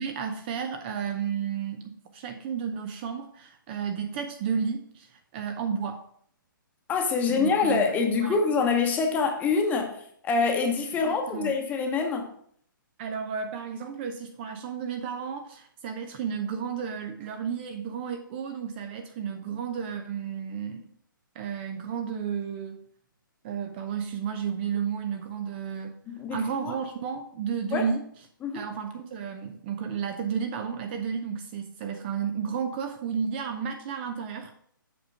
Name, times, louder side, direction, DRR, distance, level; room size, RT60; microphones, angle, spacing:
voice 1, 0.0-6.0 7.3-8.4 11.0-11.5 13.0-20.9 21.3-22.8 23.4-26.0 26.3-28.0 28.5-34.5, right 7 dB, 30° right, 0.7 m, -32 dB
voice 2, 6.9-10.0 10.2-12.3 26.1-26.8 27.7-27.8 28.4-28.6, left 5 dB, 15° left, 1.1 m, -25 dB
7.9 x 5.0 x 4.7 m
figure-of-eight pair, 130°, 11 cm